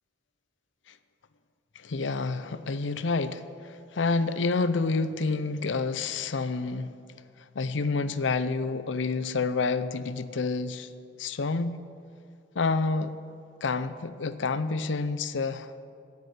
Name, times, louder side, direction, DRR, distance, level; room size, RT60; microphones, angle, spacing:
voice 1, 1.8-7.0 7.5-10.9 11.2-11.8 12.5-13.1 13.6-15.7, left 4 dB, 85° left, 14 dB, 0.6 m, -28 dB
9.6 x 8.9 x 9.8 m, 2.4 s
head